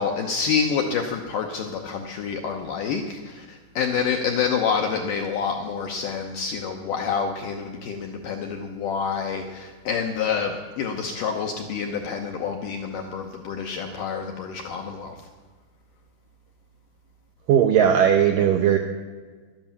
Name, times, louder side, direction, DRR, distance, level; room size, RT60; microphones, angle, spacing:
voice 1, 0.0-15.2, left 6 dB, 75° left, 3 dB, 2.0 m, -27 dB
voice 2, 17.5-18.8, right 9 dB, 85° right, 4 dB, 1.9 m, -18 dB
12.0 x 10.5 x 7.2 m, 1.4 s
omnidirectional pair, 4.9 m